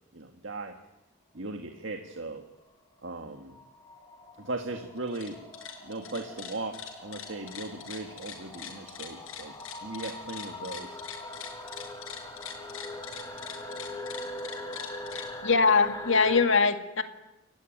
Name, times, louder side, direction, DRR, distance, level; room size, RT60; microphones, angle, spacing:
voice 1, 0.1-0.8 1.3-2.4 3.0-3.6 4.4-5.4 5.8-9.5 9.8-11.0, right 2 dB, 60° right, 4 dB, 1.7 m, -38 dB
sound 1, 1.6-16.5, left 1 dB, 20° left, 2.4 m, -42 dB
sound 2, 5.0-5.3 5.5-15.3, left 8 dB, 80° left, 5.9 m, -42 dB
voice 2, 15.1-17.0, left 4 dB, 65° left, 7 dB, 1.9 m, -23 dB
29.5 x 14.5 x 9.3 m, 0.94 s
head